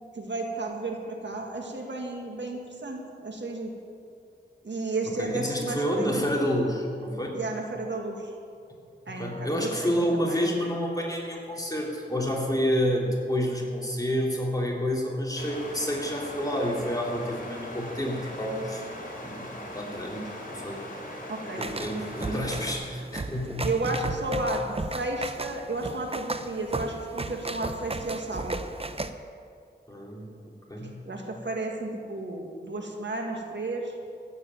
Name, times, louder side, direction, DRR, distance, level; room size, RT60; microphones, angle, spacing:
voice 1, 0.2-3.7 4.6-6.2 7.3-8.3 9.1-9.9 10.3-10.5 21.3-21.6 23.6-24.6 24.9-28.5 31.1-33.9, right 2 dB, 75° right, 1 dB, 2.0 m, -32 dB
voice 2, 5.1-7.4 9.1-18.9 19.2-20.9 21.6-23.7 24.0-24.2 29.9-31.1, equal, 20° left, -2 dB, 3.4 m, -29 dB
sound 1, 15.4-22.7, left 1 dB, 50° left, 3.9 m, -40 dB
sound 2, 21.6-29.1, right 2 dB, 30° right, 0.8 m, -35 dB
14.5 x 8.7 x 9.0 m, 2.4 s
wide cardioid pair, 55°, 19 cm